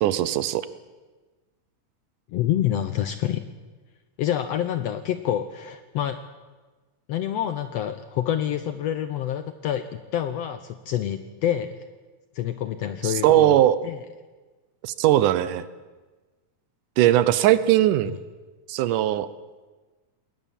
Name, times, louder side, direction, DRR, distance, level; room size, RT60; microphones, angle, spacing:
voice 1, 0.0-0.7 13.0-13.8 14.8-15.7 17.0-18.1 18.7-19.3, right 13 dB, 80° right, 15 dB, 2.3 m, -19 dB
voice 2, 2.3-3.4 4.2-6.2 7.1-11.7 12.3-13.6 13.8-14.0 17.3-17.4 18.1-18.2, left 11 dB, 75° left, 11 dB, 1.5 m, -27 dB
21.0 x 18.5 x 7.4 m, 1.3 s
omnidirectional pair, 3.7 m